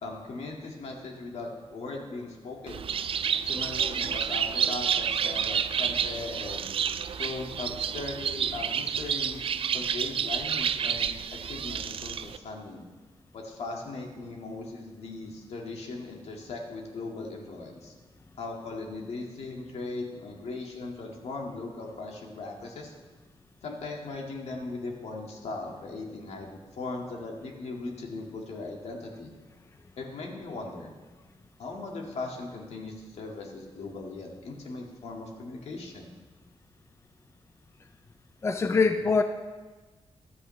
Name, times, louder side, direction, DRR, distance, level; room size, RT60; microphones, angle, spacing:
voice 1, 0.0-2.9 3.5-6.7 7.2-9.4 9.7-12.8 13.3-17.9 18.4-22.9 23.6-29.3 30.0-30.9 31.6-36.1, left 3 dB, 80° left, 0 dB, 2.0 m, -38 dB
Bird, 2.7-12.4, right 7 dB, 60° right, 0.4 m, -29 dB
voice 2, 38.4-39.2, left 4 dB, 25° left, 7 dB, 0.4 m, -23 dB
14.5 x 12.0 x 3.2 m, 1.3 s
wide cardioid pair, 160°, 11 cm